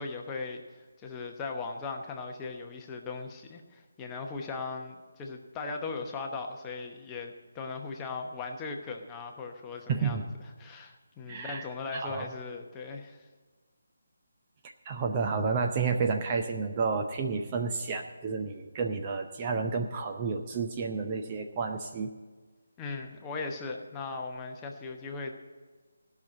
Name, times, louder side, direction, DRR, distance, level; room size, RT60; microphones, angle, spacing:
voice 1, 0.0-13.3 22.8-25.3, left 4 dB, 15° left, 2 dB, 1.0 m, -38 dB
voice 2, 9.9-10.3 11.3-11.6 11.9-12.3 14.9-22.1, right 4 dB, 25° right, 3 dB, 0.7 m, -31 dB
16.0 x 6.0 x 7.4 m, 1.4 s
figure-of-eight pair, 150°, 0 cm